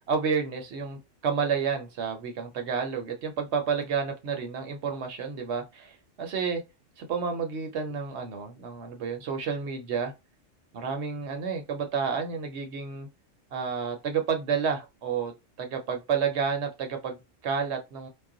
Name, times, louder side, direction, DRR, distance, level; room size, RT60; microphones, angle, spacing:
voice 1, 0.1-6.6 7.0-10.1 10.7-13.1 13.5-18.1, right 6 dB, 65° right, 0.9 m, -30 dB
2.3 x 2.1 x 3.7 m
omnidirectional pair, 1.3 m